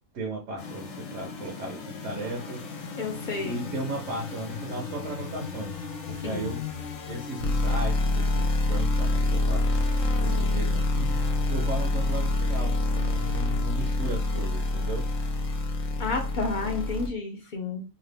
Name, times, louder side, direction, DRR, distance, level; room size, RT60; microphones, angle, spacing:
voice 1, 0.1-2.6 3.4-6.6 7.0-9.7 10.2-15.1, right 2 dB, 70° right, -1 dB, 1.0 m, -36 dB
sound 1, 0.6-17.1, left 2 dB, 70° left, 1.0 m, -28 dB
voice 2, 3.0-3.7 6.2-6.5 16.0-17.8, left 3 dB, 55° left, 2 dB, 0.6 m, -31 dB
2.8 x 2.3 x 3.3 m, 0.32 s
omnidirectional pair, 1.4 m